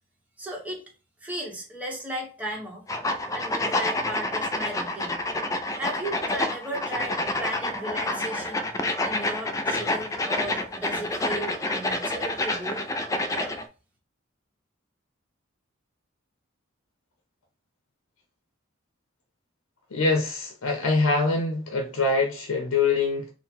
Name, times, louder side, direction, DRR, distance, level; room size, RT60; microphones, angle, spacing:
voice 1, 0.4-0.9 1.2-2.9 3.3-5.2 5.7-8.7 9.0-12.9 13.3-13.5, right 1 dB, 5° right, 0.9 m, -35 dB
sound 1, 2.9-13.6, left 2 dB, 15° left, 0.3 m, -28 dB
voice 2, 19.9-23.3, left 3 dB, 85° left, 0.7 m, -24 dB
3.8 x 2.1 x 4.3 m
head